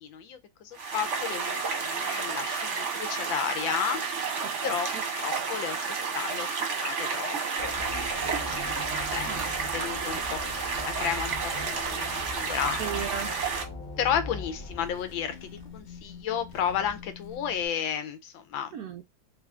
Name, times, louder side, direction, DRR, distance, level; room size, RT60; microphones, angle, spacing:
voice 1, 0.0-4.2 4.6-4.9 5.2-9.3 9.7-13.0 14.0-18.7, left 8 dB, 80° left, 1.5 m, -33 dB
sound 1, 0.7-13.6, right 5 dB, 50° right, 1.0 m, -31 dB
voice 2, 4.4-5.0 9.2-9.4 12.8-13.4 18.7-19.0, right 9 dB, 80° right, 0.8 m, -36 dB
sound 2, 7.6-17.7, left 3 dB, 40° left, 0.6 m, -41 dB
3.5 x 3.4 x 2.3 m
omnidirectional pair, 2.1 m